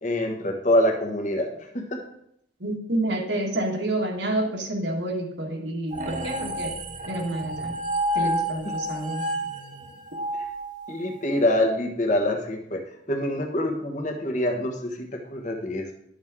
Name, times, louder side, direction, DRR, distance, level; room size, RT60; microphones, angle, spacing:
voice 1, 0.0-1.8 10.9-12.8 13.1-15.9, left 1 dB, 40° left, 4 dB, 1.3 m, -25 dB
voice 2, 2.6-6.7 7.1-7.8 8.1-9.2, right 1 dB, 75° right, 0 dB, 1.6 m, -28 dB
sound 1, 5.9-11.3, right 1 dB, 45° right, 0.8 m, -30 dB
11.0 x 6.3 x 3.6 m, 0.74 s
head